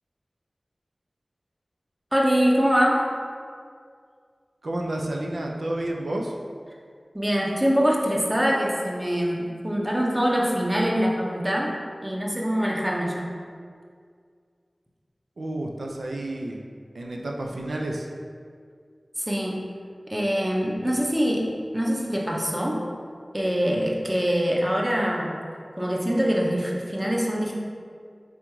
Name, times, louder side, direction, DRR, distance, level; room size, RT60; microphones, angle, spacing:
voice 1, 2.1-3.1 7.1-13.3 19.2-19.6 20.1-21.5 21.7-22.9 23.3-25.4 25.8-27.5, equal, 20° right, -2 dB, 0.6 m, -24 dB
voice 2, 4.6-6.3 15.4-16.6 16.9-18.1, right 1 dB, 90° right, 0 dB, 0.4 m, -30 dB
3.7 x 3.4 x 3.0 m, 2.1 s
wide cardioid pair, 45°, 0 cm